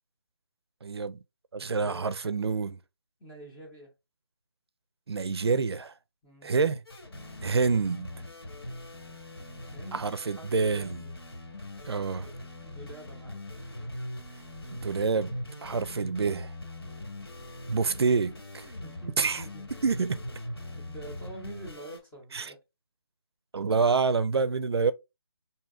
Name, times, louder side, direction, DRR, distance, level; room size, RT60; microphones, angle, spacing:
voice 1, 0.8-1.2 1.5-2.8 5.1-5.9 6.4-6.8 7.4-8.1 9.9-11.0 11.8-12.3 14.7-16.5 17.7-18.7 19.2-19.4 19.8-20.2 22.3-22.5 23.5-24.9, right 4 dB, 80° right, 0.5 m, -27 dB
voice 2, 3.2-3.9 6.2-6.6 9.7-10.0 10.4-11.1 12.1-12.3 12.6-13.5 18.8-19.7 20.9-22.6 24.4-24.6, right 2 dB, 5° left, 0.6 m, -46 dB
sound 1, 6.8-22.0, left 1 dB, 75° left, 1.8 m, -41 dB
5.0 x 2.7 x 2.4 m
figure-of-eight pair, 165°, 13 cm